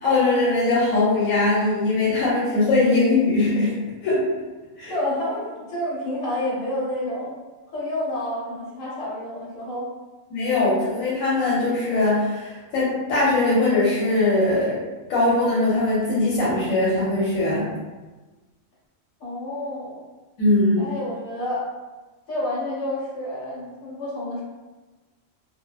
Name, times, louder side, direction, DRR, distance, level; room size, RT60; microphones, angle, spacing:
voice 1, 0.0-3.7 4.0-4.2 4.8-5.0 10.3-14.8 15.1-17.7 20.4-20.8, left 2 dB, 90° left, -8 dB, 1.1 m, -21 dB
voice 2, 4.8-7.3 7.7-9.9 19.2-20.0 20.8-21.7 22.3-24.4, left 1 dB, 70° left, -7 dB, 1.3 m, -29 dB
2.6 x 2.3 x 2.3 m, 1.2 s
omnidirectional pair, 1.4 m